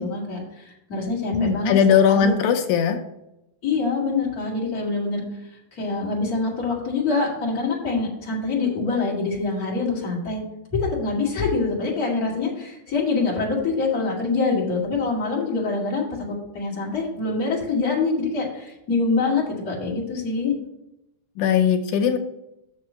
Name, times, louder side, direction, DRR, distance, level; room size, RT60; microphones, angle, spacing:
voice 1, 0.0-1.7 2.1-2.3 3.6-10.4 10.7-20.5, left 4 dB, 30° left, -4 dB, 2.6 m, -25 dB
voice 2, 1.3-3.0 21.4-22.2, left 7 dB, 85° left, 6 dB, 2.1 m, -19 dB
6.5 x 6.2 x 5.7 m, 0.87 s
omnidirectional pair, 3.5 m